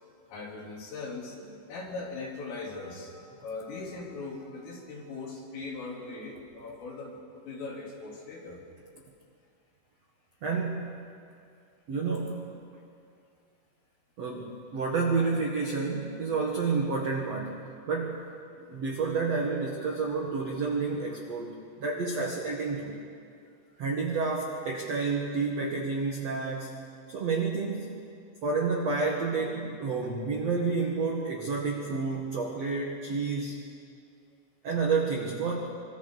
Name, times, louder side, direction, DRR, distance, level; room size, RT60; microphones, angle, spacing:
voice 1, 0.3-1.4 1.7-8.6, left 3 dB, 85° left, -4 dB, 6.3 m, -40 dB
voice 2, 10.4-11.1 11.9-12.6 14.2-18.3 18.6-23.0 23.8-26.8 27.1-28.0 28.4-33.6 34.6-35.7, right 4 dB, 70° right, -1 dB, 1.5 m, -30 dB
26.5 x 25.0 x 4.1 m, 2.3 s
omnidirectional pair, 5.7 m